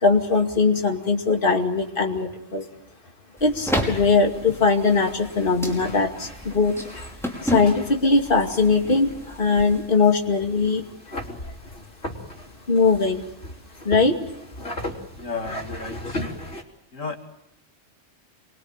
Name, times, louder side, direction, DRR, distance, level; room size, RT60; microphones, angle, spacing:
voice 1, 0.0-2.6 3.4-7.0 7.4-10.8 12.7-13.2 13.8-14.2, left 4 dB, 45° left, 3 dB, 2.7 m, -21 dB
sound 1, 3.4-9.9, equal, ahead, 5.3 m, -32 dB
sound 2, 3.8-16.6, left 1 dB, 60° left, 4.0 m, -38 dB
voice 2, 15.2-16.2 16.9-17.2, left 4 dB, 85° left, 4 dB, 3.0 m, -33 dB
28.0 x 23.0 x 9.0 m, 0.80 s
omnidirectional pair, 1.3 m